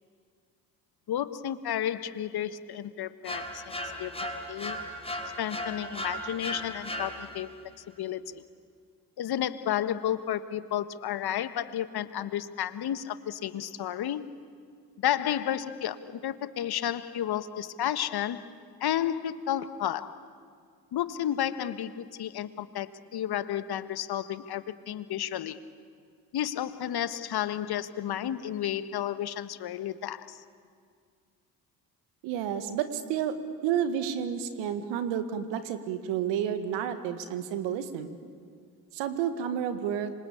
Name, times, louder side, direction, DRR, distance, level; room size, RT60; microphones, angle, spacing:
voice 1, 1.1-4.8 5.4-7.5 8.0-8.4 9.2-14.2 15.0-18.5 18.8-20.2 20.9-25.6 26.3-30.4, left 11 dB, 55° left, 13 dB, 1.4 m, -32 dB
sound 1, 3.2-7.6, equal, 15° left, 3.7 m, -37 dB
voice 2, 32.2-33.4 33.6-38.2 38.9-40.1, right 9 dB, 75° right, 9 dB, 1.9 m, -30 dB
26.5 x 26.0 x 8.6 m, 2.2 s
hypercardioid pair, 50°, 45 cm